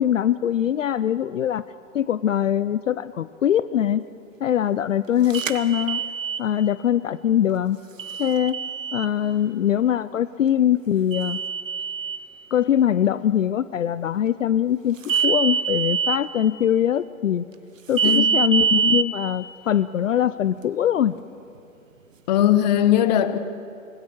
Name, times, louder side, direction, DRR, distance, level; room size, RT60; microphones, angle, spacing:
voice 1, 0.0-1.6 1.9-4.0 4.4-6.0 6.4-7.8 8.2-8.6 8.9-11.4 12.5-17.5 17.9-21.1, left 10 dB, 65° left, 0.7 m, -22 dB
sound 1, 5.3-6.4 8.0-9.1 11.1-12.2 15.0-16.2 18.0-19.0, right 7 dB, 70° right, 1.4 m, -24 dB
voice 2, 22.3-23.4, left 11 dB, 30° left, 1.1 m, -19 dB
25.5 x 20.5 x 6.4 m
hypercardioid pair, 145°, 41 cm